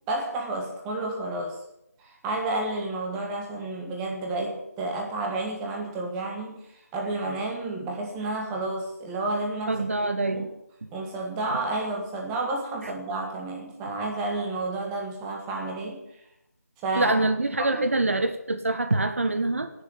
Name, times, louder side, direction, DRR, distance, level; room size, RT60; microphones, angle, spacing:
voice 1, 0.1-1.6 2.0-9.8 10.2-10.5 10.9-16.0 16.8-17.1 17.6-17.9, right 2 dB, 10° right, 1 dB, 1.5 m, -31 dB
voice 2, 9.7-10.5 12.8-12.9 16.9-19.7, right 2 dB, 55° right, 10 dB, 1.3 m, -25 dB
17.5 x 6.8 x 9.9 m, 0.82 s
figure-of-eight pair, 155°, 9 cm